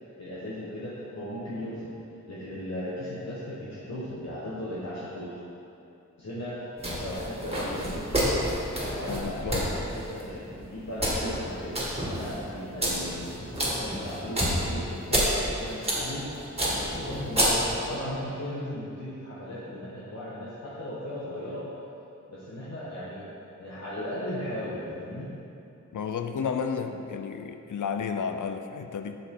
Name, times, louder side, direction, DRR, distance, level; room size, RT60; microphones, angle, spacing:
voice 1, 0.2-2.0 2.3-5.4 6.2-8.4 8.9-9.4 9.6-16.3 17.0-21.7 22.3-23.2 23.6-25.3, left 1 dB, 60° left, -9 dB, 1.2 m, -36 dB
sound 1, 6.8-18.0, equal, 20° right, 1.8 m, -29 dB
voice 2, 9.1-9.7 25.9-29.2, left 6 dB, 85° left, 7 dB, 0.5 m, -32 dB
7.6 x 6.8 x 3.7 m, 2.7 s
wide cardioid pair, 100°, 30 cm